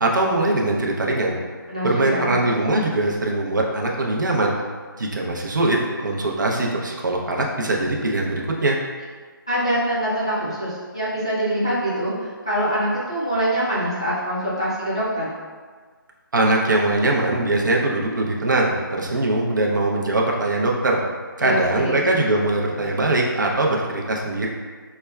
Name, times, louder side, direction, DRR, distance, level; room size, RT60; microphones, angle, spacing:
voice 1, 0.0-1.3 1.8-4.5 5.0-8.8 16.3-21.0 21.4-24.5, right 2 dB, 55° right, -1 dB, 0.6 m, -21 dB
voice 2, 1.7-2.3 9.5-15.3 21.4-22.0, equal, 15° left, -10 dB, 0.3 m, -24 dB
5.6 x 2.2 x 2.2 m, 1.5 s
hypercardioid pair, 175°, 12 cm